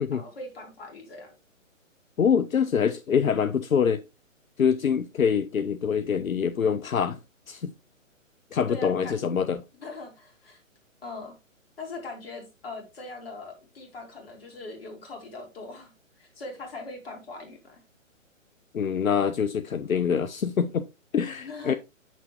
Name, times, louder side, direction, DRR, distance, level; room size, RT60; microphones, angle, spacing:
voice 1, 0.1-1.3 8.7-9.1 9.8-10.6 11.0-11.4 11.8-15.9 16.2-17.8 21.4-21.8, left 3 dB, 45° left, 2.4 m, -41 dB
voice 2, 2.2-4.0 4.6-7.2 7.5-7.7 8.5-9.6 18.7-20.8 21.1-21.7, left 7 dB, 85° left, 0.5 m, -25 dB
7.0 x 6.1 x 3.0 m
figure-of-eight pair, 130°, 40 cm